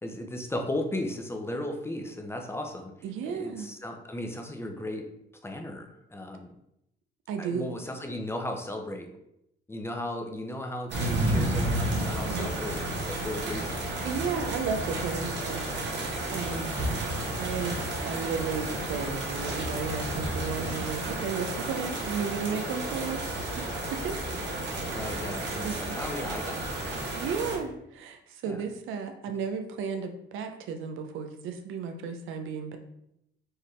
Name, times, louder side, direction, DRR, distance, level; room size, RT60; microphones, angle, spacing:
voice 1, 0.0-5.1 5.4-6.5 7.4-9.1 9.7-13.8 16.8-17.3 24.9-26.9 28.5-28.6, left 1 dB, 10° left, 3 dB, 0.7 m, -36 dB
voice 2, 3.0-3.7 7.3-7.7 12.3-12.5 14.0-15.6 15.9-16.7 17.4-24.2 24.9-25.1 25.6-26.0 27.1-32.8, right 6 dB, 85° right, 6 dB, 0.6 m, -34 dB
sound 1, 10.9-27.6, right 1 dB, 60° right, 1.1 m, -32 dB
4.5 x 3.5 x 3.2 m, 0.80 s
cardioid pair, 90°, 20 cm